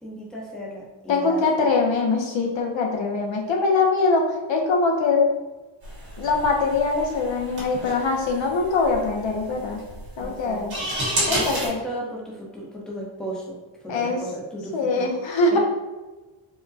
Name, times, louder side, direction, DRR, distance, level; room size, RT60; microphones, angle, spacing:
voice 1, 0.0-1.4 10.2-10.9 11.3-13.6 13.8-15.1 15.5-15.6, right 1 dB, ahead, -4 dB, 0.7 m, -35 dB
voice 2, 1.1-4.2 4.5-5.3 6.2-9.8 10.2-10.8 11.3-11.8 13.9-14.2 14.7-15.6, left 3 dB, 65° left, 1 dB, 0.7 m, -22 dB
sound 1, 5.8-11.7, right 1 dB, 50° right, 1.5 m, -31 dB
4.8 x 2.1 x 2.6 m, 1.2 s
wide cardioid pair, 120°, 48 cm